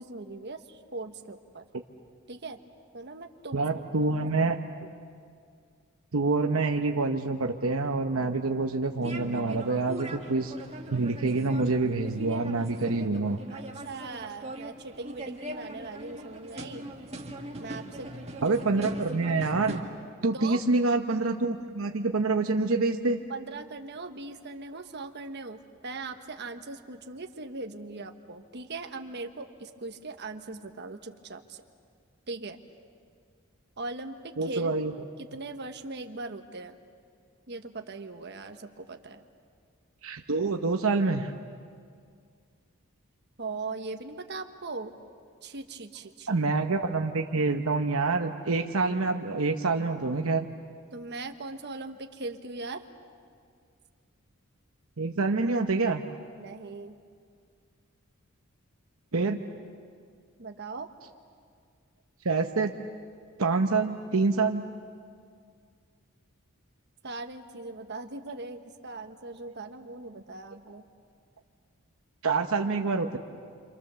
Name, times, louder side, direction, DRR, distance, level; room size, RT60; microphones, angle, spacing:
voice 1, 0.0-1.6 2.3-2.6 2.9-3.7 4.2-4.3 4.8-5.0 13.5-16.8 17.6-18.1 18.4-18.6 20.3-20.6 23.3-31.6 32.3-32.6 33.8-34.1 34.4-34.8 35.2-36.8 37.5-39.2 43.4-44.9 45.4-46.4 50.9-52.8 56.4-57.0 60.4-60.9 67.0-70.8, right 3 dB, 50° right, 5 dB, 1.3 m, -40 dB
voice 2, 3.5-4.6 6.1-10.5 10.9-13.4 18.4-19.8 20.2-23.2 34.4-34.9 40.0-41.3 46.3-50.4 55.0-56.0 59.1-59.4 62.2-62.7 63.4-64.6 72.2-73.2, right 3 dB, 70° right, 4 dB, 1.0 m, -26 dB
sound 1, 9.0-19.8, right 1 dB, 30° right, 1.9 m, -41 dB
28.5 x 26.5 x 7.0 m, 2.2 s
head